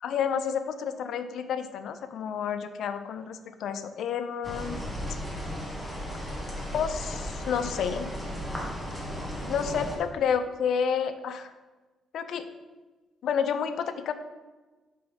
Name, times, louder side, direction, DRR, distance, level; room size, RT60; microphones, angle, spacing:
voice 1, 0.0-4.8 6.7-8.1 9.5-11.5 12.1-12.5 13.2-14.1, left 7 dB, 70° left, 10 dB, 0.6 m, -30 dB
sound 1, 4.4-10.0, equal, 5° left, 2.0 m, -35 dB
5.5 x 5.2 x 5.6 m, 1.2 s
cardioid pair, 90°, 0 cm